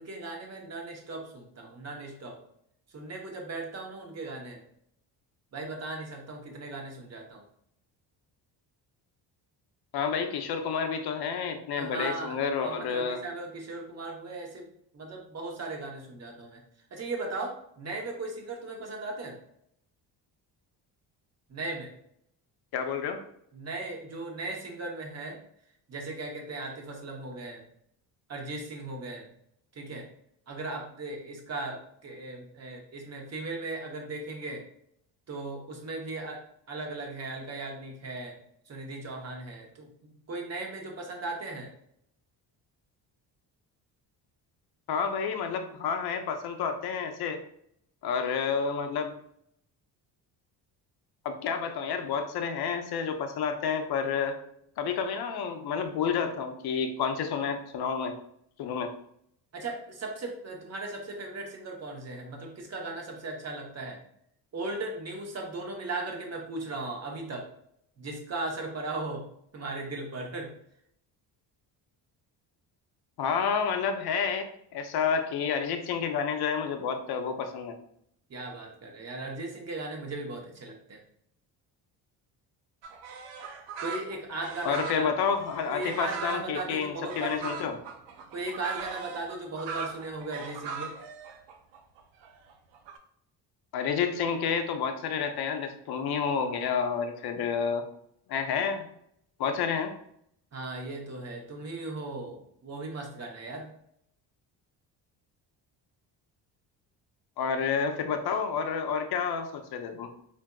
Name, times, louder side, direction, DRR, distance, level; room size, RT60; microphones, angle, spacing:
voice 1, 0.0-2.4 2.9-4.6 5.5-7.4 11.8-12.4 12.6-14.7 14.9-16.6 16.9-19.4 21.5-21.9 23.5-25.4 25.9-27.6 28.3-29.3 29.7-30.1 30.5-34.6 35.3-36.4 36.7-38.4 38.7-39.9 40.3-41.7 59.5-64.0 64.5-67.5 68.0-69.3 69.5-70.5 78.3-81.0 83.8-85.1 85.7-87.6 88.3-90.9 100.5-103.7, right 2 dB, 35° right, 1 dB, 0.9 m, -37 dB
voice 2, 9.9-13.2 22.7-23.2 44.9-47.4 48.0-49.1 51.2-54.4 54.8-58.1 58.6-58.9 73.2-77.7 84.6-87.8 93.7-97.8 98.3-98.9 99.4-99.9 107.4-110.1, left 6 dB, 60° left, 6 dB, 0.6 m, -29 dB
sound 1, 82.8-93.0, right 5 dB, 75° right, 0.5 m, -40 dB
3.4 x 2.6 x 2.3 m, 0.71 s
supercardioid pair, 75°, 44 cm